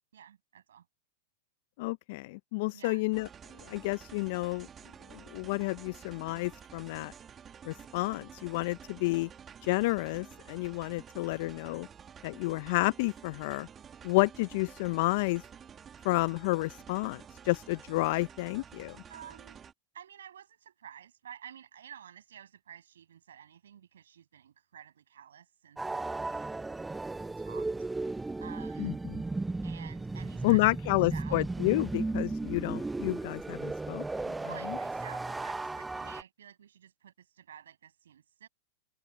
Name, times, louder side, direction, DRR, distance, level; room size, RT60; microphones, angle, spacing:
voice 1, 0.1-0.9 2.7-3.1 19.1-19.6 19.9-26.6 27.4-29.0 29.6-31.4 34.4-38.5, right 9 dB, 80° right, 7.9 m, -51 dB
voice 2, 1.8-3.3 3.7-4.7 5.1-7.1 7.6-9.3 9.6-11.9 12.2-13.7 14.0-15.4 16.0-17.2 17.5-19.0 28.8-29.2 30.4-34.0, left 23 dB, 55° left, 0.6 m, -30 dB
sound 1, 3.1-19.7, right 7 dB, 25° right, 2.1 m, -51 dB
sound 2, 25.8-36.2, right 3 dB, 10° right, 0.6 m, -35 dB
open air
hypercardioid pair, 110°, 0 cm